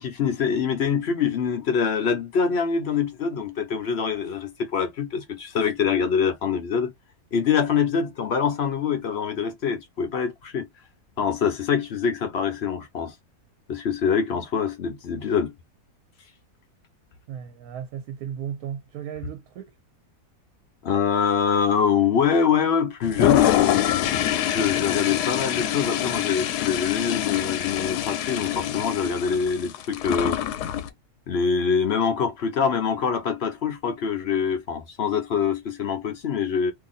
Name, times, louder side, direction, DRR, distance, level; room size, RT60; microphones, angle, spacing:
voice 1, 0.0-6.9 7.3-10.7 11.2-13.1 13.7-15.5 20.8-23.9 24.4-30.4 31.3-36.7, left 6 dB, 60° left, 0.7 m, -24 dB
voice 2, 17.3-19.8, right 9 dB, 75° right, 1.1 m, -35 dB
Toilet flush, 23.0-30.9, left 11 dB, 90° left, 1.1 m, -25 dB
2.7 x 2.6 x 3.8 m
omnidirectional pair, 1.6 m